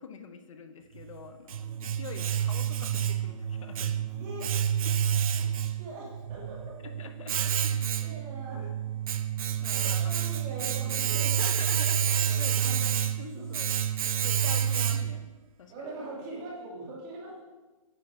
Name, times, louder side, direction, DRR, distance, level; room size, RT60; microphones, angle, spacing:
voice 1, 0.0-4.5 4.8-5.0 6.8-8.2 9.6-10.1 11.4-12.7 13.2-13.7 14.0-15.3 15.6-15.9, left 6 dB, 65° left, 8 dB, 0.8 m, -46 dB
Domestic sounds home sounds, 1.0-15.3, right 9 dB, 85° right, 0.5 m, -29 dB
voice 2, 4.2-4.5 5.4-6.8 8.0-8.7 9.7-11.6 12.0-12.9 13.3-13.4 15.7-17.5, right 2 dB, 25° right, -3 dB, 2.0 m, -42 dB
8.9 x 6.3 x 3.2 m, 1.2 s
hypercardioid pair, 160°, 18 cm